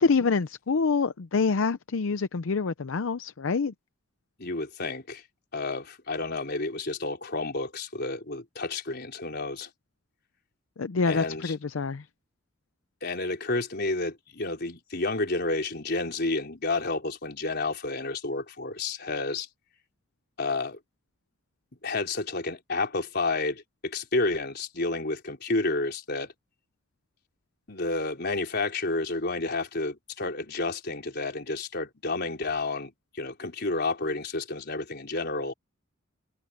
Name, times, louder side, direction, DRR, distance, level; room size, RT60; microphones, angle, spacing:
voice 1, 0.0-3.7 10.8-12.0, left 4 dB, 75° left, 0.6 m, -26 dB
voice 2, 4.4-5.2 5.5-9.7 11.1-11.5 13.0-19.5 20.4-20.8 21.8-26.3 27.7-35.5, left 3 dB, 55° left, 4.1 m, -30 dB
head